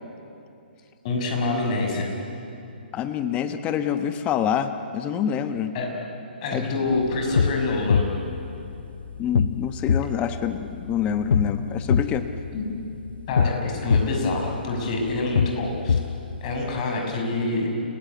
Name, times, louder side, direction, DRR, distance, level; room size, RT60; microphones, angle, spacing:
voice 1, 1.0-2.1 5.7-5.9 6.4-8.1 12.5-12.7 13.3-16.0 16.4-17.7, left 2 dB, 40° left, 1 dB, 6.2 m, -26 dB
voice 2, 2.9-5.7 6.5-6.7 9.2-12.3, left 8 dB, 20° left, 10 dB, 1.1 m, -26 dB
sound 1, 6.9-16.8, left 6 dB, 70° left, 0.6 m, -26 dB
29.5 x 17.5 x 9.4 m, 2.8 s
hypercardioid pair, 140°, 6 cm